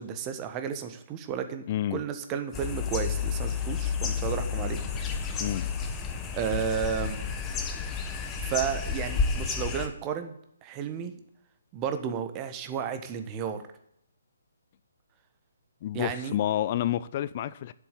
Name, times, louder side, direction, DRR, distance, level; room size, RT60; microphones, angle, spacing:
voice 1, 0.0-1.6 1.9-4.8 6.3-7.2 8.4-10.4 10.6-11.2 11.7-13.6 15.9-16.4, right 8 dB, 20° right, 1.3 m, -32 dB
voice 2, 1.7-2.0 5.4-5.7 15.8-17.7, left 12 dB, 35° left, 0.5 m, -29 dB
sound 1, 2.5-9.9, left 6 dB, 15° left, 1.2 m, -31 dB
7.6 x 7.3 x 8.3 m
figure-of-eight pair, 140°, 0 cm